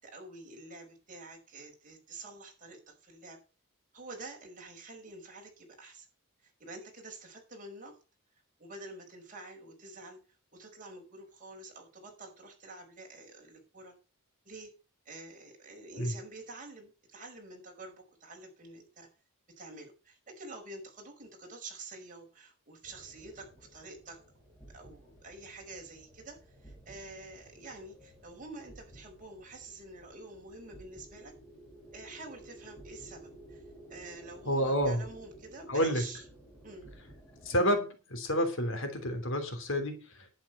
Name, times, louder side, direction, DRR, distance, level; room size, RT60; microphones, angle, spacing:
voice 1, 0.0-3.4 3.9-6.1 6.4-8.0 8.6-10.2 10.5-14.0 14.5-14.7 15.1-19.1 19.6-24.2 24.7-31.3 31.9-33.6 33.9-36.2 36.6-36.9, right 2 dB, 35° right, 2 dB, 5.2 m, -48 dB
sound 1, 22.8-37.8, right 1 dB, 10° left, 7.3 m, -54 dB
voice 2, 34.5-35.0 35.7-36.0 37.4-40.3, equal, 60° left, 7 dB, 3.1 m, -29 dB
11.0 x 8.7 x 5.8 m, 0.33 s
head